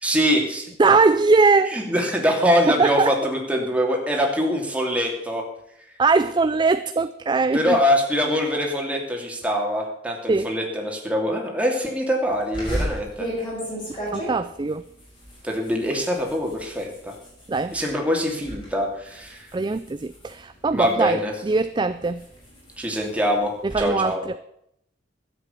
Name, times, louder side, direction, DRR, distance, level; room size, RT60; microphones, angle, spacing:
voice 1, 0.0-0.7 1.7-5.4 7.5-13.3 15.4-17.1 17.7-19.5 20.7-21.3 22.8-24.2, equal, 5° right, 0 dB, 2.7 m, -23 dB
voice 2, 0.8-1.8 2.7-3.2 6.0-7.8 10.3-10.5 13.9-14.9 17.5-17.8 19.5-22.3 23.6-24.4, right 3 dB, 25° right, 12 dB, 0.4 m, -21 dB
sound 1, 12.5-17.9 18.3-18.7 19.1-21.1 21.6-23.8, equal, 25° left, 6.1 m, -34 dB
12.5 x 8.0 x 8.3 m, 0.74 s
head